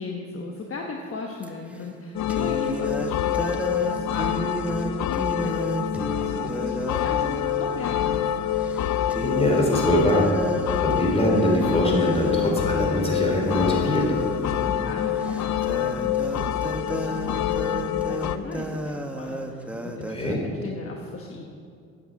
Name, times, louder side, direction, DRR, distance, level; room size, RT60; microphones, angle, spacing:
voice 1, 0.0-8.5 14.6-21.5, left 4 dB, 45° left, 1 dB, 1.2 m, -37 dB
sound 1, 1.4-1.5 2.3-8.3 8.6-8.8 9.1-20.4, right 1 dB, 5° right, 1.0 m, -32 dB
sound 2, 2.1-18.4, left 10 dB, 65° left, 0.5 m, -26 dB
voice 2, 9.2-10.3 10.7-14.1 20.1-20.4, left 1 dB, 20° left, -1 dB, 3.1 m, -23 dB
9.0 x 8.6 x 7.6 m, 2.4 s
cardioid pair, 90°, 30 cm